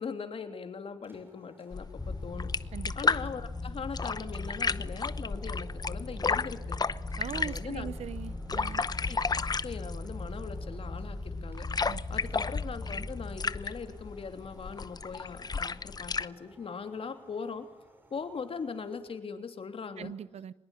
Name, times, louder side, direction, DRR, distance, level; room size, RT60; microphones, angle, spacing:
voice 1, 0.0-2.5 2.9-6.8 7.3-7.9 9.1-9.2 9.6-11.7 12.1-17.7 18.1-20.1, left 5 dB, 60° left, 7 dB, 3.1 m, -40 dB
sound 1, 0.9-19.2, right 1 dB, 20° right, 6.4 m, -59 dB
sound 2, 1.7-16.3, left 4 dB, 40° left, 0.8 m, -34 dB
sound 3, 2.0-15.3, left 2 dB, 20° left, 7.7 m, -40 dB
voice 2, 7.2-8.8 11.9-12.0 12.3-12.4 20.0-20.5, right 9 dB, 80° right, 18 dB, 0.8 m, -41 dB
24.0 x 21.0 x 9.9 m, 0.98 s
cardioid pair, 70°, 11 cm